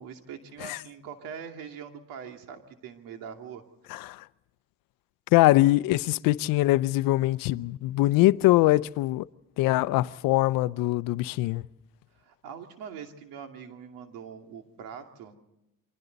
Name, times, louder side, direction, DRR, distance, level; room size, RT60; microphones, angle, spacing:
voice 1, 0.0-3.6 12.1-15.4, right 7 dB, 85° right, 2.6 m, -43 dB
voice 2, 3.9-4.2 5.3-9.3 9.6-11.6, left 17 dB, 85° left, 0.7 m, -23 dB
28.5 x 24.5 x 4.0 m
cardioid pair, 105°, 33 cm